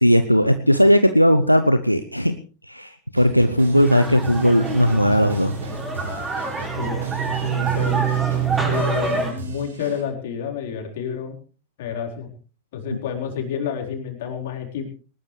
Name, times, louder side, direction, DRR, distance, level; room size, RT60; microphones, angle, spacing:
voice 1, 0.0-2.3 2.7-5.5, equal, 90° left, 10 dB, 0.8 m, -17 dB
sound 1, 3.2-10.0, right 3 dB, 70° right, 4.5 m, -37 dB
sound 2, 3.7-9.3, right 5 dB, 15° right, 6.2 m, -25 dB
voice 2, 6.7-8.1 8.6-11.4 11.8-12.3 12.7-14.9, left 7 dB, 55° left, 3 dB, 4.2 m, -30 dB
20.5 x 19.5 x 3.2 m, 0.36 s
figure-of-eight pair, 90°, 0 cm